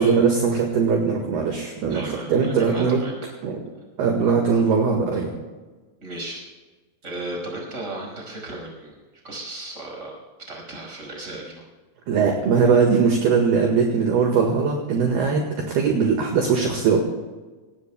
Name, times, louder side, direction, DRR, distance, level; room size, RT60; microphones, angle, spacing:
voice 1, 0.0-3.0 3.4-3.5 4.0-5.3 12.1-17.0, right 5 dB, 60° right, 1 dB, 3.1 m, -20 dB
voice 2, 1.9-3.3 6.0-6.4 7.0-10.2 10.5-11.6, right 2 dB, 15° right, -1 dB, 5.1 m, -35 dB
26.0 x 18.5 x 2.3 m, 1.3 s
omnidirectional pair, 5.9 m